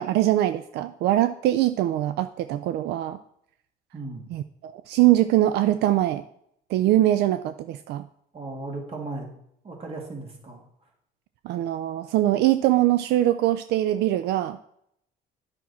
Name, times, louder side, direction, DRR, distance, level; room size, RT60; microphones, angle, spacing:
voice 1, 0.0-3.2 4.3-6.2 6.7-8.0 11.4-14.6, right 14 dB, 80° right, 11 dB, 0.4 m, -22 dB
voice 2, 3.9-4.3 8.3-9.3 9.6-10.6, right 2 dB, 35° right, 0 dB, 2.5 m, -36 dB
9.6 x 6.0 x 4.3 m, 0.73 s
cardioid pair, 110°, 17 cm